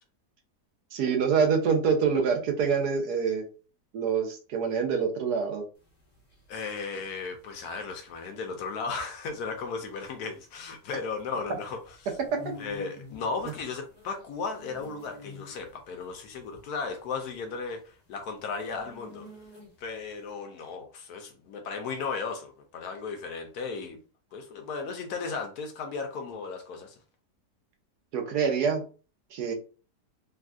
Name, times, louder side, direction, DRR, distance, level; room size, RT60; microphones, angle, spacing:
voice 1, 0.9-3.4 3.9-5.6 28.1-28.8 29.3-29.5, right 6 dB, 70° right, 4 dB, 1.1 m, -26 dB
sound 1, 5.8-20.0, left 3 dB, 25° left, 1.3 m, -49 dB
voice 2, 6.5-12.0 12.6-19.3 19.8-24.0 24.3-26.9, left 4 dB, 75° left, 5 dB, 1.0 m, -35 dB
3.4 x 2.5 x 2.3 m, 0.36 s
omnidirectional pair, 1.8 m